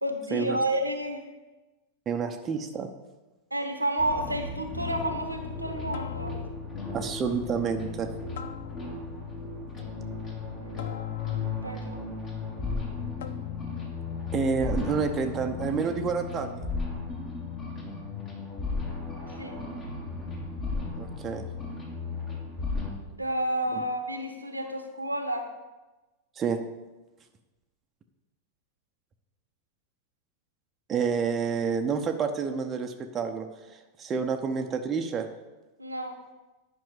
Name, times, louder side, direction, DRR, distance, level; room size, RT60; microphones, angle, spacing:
voice 1, 0.0-1.2 3.5-6.4 10.6-10.8 11.6-12.0 19.4-19.6 23.2-25.5 35.8-36.2, right 1 dB, 85° right, 5 dB, 1.0 m, -30 dB
voice 2, 2.1-2.9 6.9-8.1 14.3-16.6 21.0-21.5 23.7-23.8 26.4-26.6 30.9-35.3, right 5 dB, 25° right, 5 dB, 0.7 m, -29 dB
sound 1, 4.0-22.9, left 4 dB, 30° left, 1.9 m, -35 dB
sound 2, 5.9-6.7 8.4-9.2 10.8-11.7 13.2-13.8, left 9 dB, 60° left, 0.5 m, -44 dB
10.5 x 5.4 x 5.1 m, 1.1 s
figure-of-eight pair, 90°, 0 cm